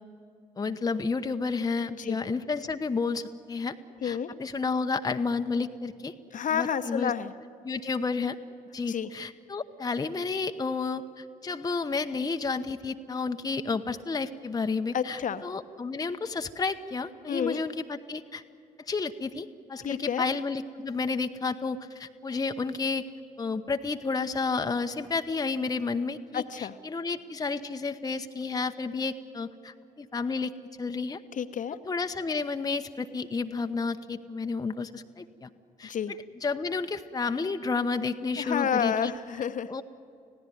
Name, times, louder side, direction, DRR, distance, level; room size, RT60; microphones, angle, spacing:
voice 1, 0.6-3.8 4.0-6.1 6.5-7.1 7.6-8.4 8.7-18.4 18.9-23.0 23.4-30.5 30.8-31.2 31.9-35.5 35.8-35.9 36.4-39.1 39.7-39.8, left 4 dB, 20° left, 7 dB, 0.9 m, -31 dB
voice 2, 4.0-4.3 6.3-7.3 8.9-9.1 14.9-15.4 17.3-17.6 19.8-20.2 26.3-26.7 31.3-31.8 35.8-36.2 38.4-39.7, left 8 dB, 45° left, 10 dB, 1.0 m, -30 dB
26.0 x 16.5 x 9.2 m, 2.6 s
figure-of-eight pair, 45°, 19 cm